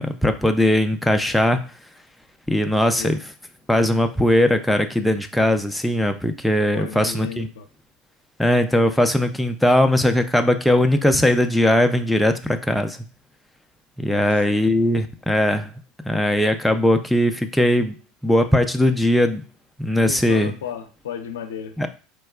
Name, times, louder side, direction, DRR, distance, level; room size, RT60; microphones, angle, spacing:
voice 1, 0.0-1.6 2.5-3.2 3.7-7.5 8.4-13.0 14.0-15.7 16.0-18.0 18.2-19.4 19.8-20.5 21.8-21.9, left 1 dB, ahead, 5 dB, 0.3 m, -19 dB
voice 2, 6.7-7.7 14.1-14.4 20.0-21.8, left 8 dB, 85° left, 6 dB, 0.4 m, -33 dB
4.3 x 2.3 x 2.3 m, 0.35 s
hypercardioid pair, 90°, 0 cm